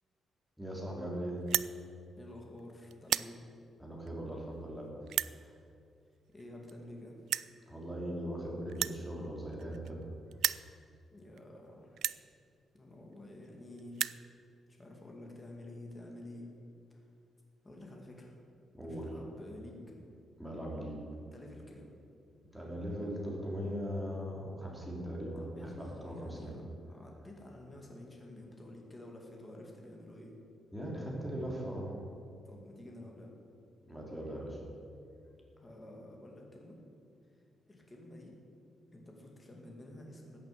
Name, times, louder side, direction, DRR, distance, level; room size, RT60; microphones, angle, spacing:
voice 1, 0.6-1.4 3.8-4.9 5.4-5.5 7.7-10.0 18.7-19.1 20.4-21.0 22.5-26.5 30.7-31.9 33.9-34.6, equal, ahead, -3 dB, 3.3 m, -39 dB
sound 1, 1.4-1.7 2.4-2.6 2.9-3.3 4.1-4.2 5.1-5.3 6.4-6.5 6.7-6.8 7.3-7.5 8.7-10.0 10.3-10.7 11.4-11.5 12.0-12.2 13.1-13.2 13.4-13.5 13.8-14.2, right 10 dB, 70° right, 0.3 m, -33 dB
voice 2, 2.2-3.4 6.3-7.2 11.1-12.0 12.7-14.1 14.8-16.6 16.9-17.0 17.6-18.4 18.8-19.9 21.3-21.9 25.4-26.5 26.9-30.3 32.4-33.3 35.6-36.8 37.7-38.3 38.9-40.4, left 1 dB, 15° left, 0 dB, 2.4 m, -50 dB
14.0 x 8.8 x 8.7 m, 2.4 s
cardioid pair, 165°, 0 cm